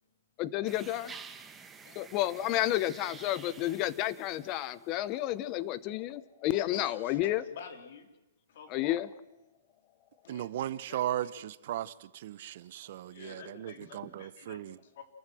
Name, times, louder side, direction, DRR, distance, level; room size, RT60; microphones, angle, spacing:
voice 1, 0.4-1.1 2.0-7.4 8.7-9.1, left 14 dB, 25° left, 0.8 m, -31 dB
sound 1, 0.7-5.0, right 5 dB, 10° right, 1.1 m, -50 dB
voice 2, 6.5-8.1 8.5-8.9 10.2-11.3 13.1-15.0, left 6 dB, 50° left, 3.2 m, -50 dB
voice 3, 10.3-14.8, right 12 dB, 45° right, 0.9 m, -37 dB
28.5 x 14.0 x 7.8 m
hypercardioid pair, 165°, 0 cm